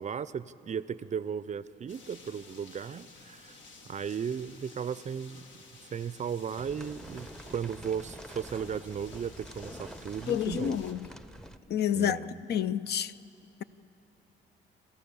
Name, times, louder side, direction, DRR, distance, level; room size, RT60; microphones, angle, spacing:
voice 1, 0.0-3.6 3.9-5.6 5.9-10.8 12.0-12.4, right 7 dB, 35° right, 0.4 m, -36 dB
sound 1, 1.9-10.9, left 3 dB, 75° left, 1.8 m, -53 dB
sound 2, 6.6-11.6, right 1 dB, 5° left, 0.7 m, -47 dB
voice 2, 10.3-11.0 11.7-12.2 12.5-13.1, left 9 dB, 55° left, 0.5 m, -28 dB
28.5 x 13.5 x 7.0 m
cardioid pair, 90°, 20 cm